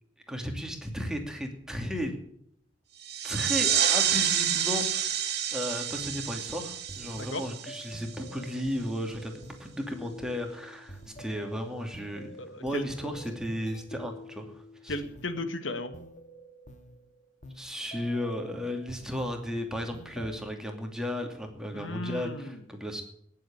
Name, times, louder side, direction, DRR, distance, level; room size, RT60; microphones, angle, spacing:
voice 1, 0.3-2.1 3.2-9.3 9.6-14.9 17.5-23.0, equal, 5° right, 3 dB, 2.6 m, -34 dB
sound 1, 3.0-8.3, right 9 dB, 55° right, 2.2 m, -29 dB
sound 2, 6.4-19.5 19.9-20.4, equal, 40° left, 2.0 m, -49 dB
voice 2, 7.2-7.5 12.4-12.8 14.9-15.9 21.7-22.6, left 2 dB, 75° left, 9 dB, 1.8 m, -35 dB
18.5 x 7.8 x 8.7 m, 0.71 s
head